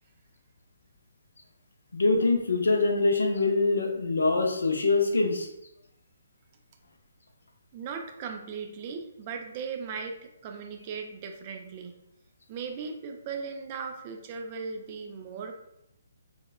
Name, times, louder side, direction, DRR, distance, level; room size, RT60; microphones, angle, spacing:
voice 1, 1.9-5.5, left 3 dB, 75° left, 3 dB, 0.4 m, -24 dB
voice 2, 7.7-12.0 12.5-15.6, right 5 dB, 35° right, 4 dB, 0.3 m, -38 dB
3.0 x 2.1 x 2.2 m, 0.83 s
figure-of-eight pair, 140°, 0 cm